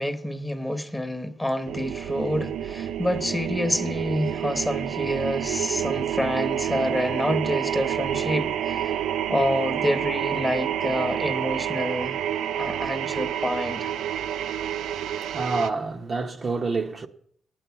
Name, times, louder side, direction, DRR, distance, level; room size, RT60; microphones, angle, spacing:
voice 1, 0.0-8.9 9.3-12.2 12.6-13.9, left 1 dB, 10° left, 1.0 m, -28 dB
sound 1, 1.7-15.7, right 10 dB, 80° right, 0.4 m, -28 dB
voice 2, 15.0-17.1, right 3 dB, 40° right, 0.7 m, -28 dB
9.2 x 8.9 x 7.0 m
cardioid pair, 90°, 0 cm